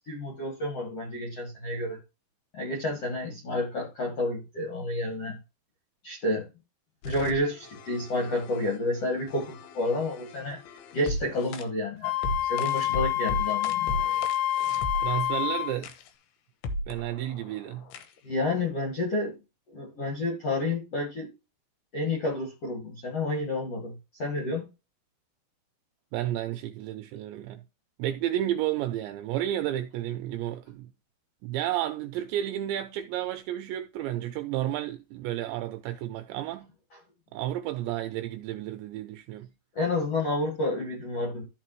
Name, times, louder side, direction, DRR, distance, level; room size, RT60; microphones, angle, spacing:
voice 1, 0.1-2.0 2.5-5.4 6.0-6.5 7.0-10.6 10.9-12.1 12.4-13.9 18.2-19.4 19.7-21.3 21.9-24.7 39.7-41.4, left 2 dB, 50° left, 1.9 m, -30 dB
sound 1, 7.0-11.6 12.2-15.3 15.8-16.1 16.6-18.2, left 1 dB, 75° left, 2.5 m, -37 dB
Wind instrument woodwind instrument, 12.0-15.8, left 12 dB, 90° left, 3.2 m, -27 dB
voice 2, 15.0-15.9 16.9-17.9 26.1-27.6 28.0-30.9 31.4-36.7 37.3-39.5, right 12 dB, 85° right, 2.6 m, -32 dB
13.5 x 4.7 x 3.1 m
omnidirectional pair, 5.6 m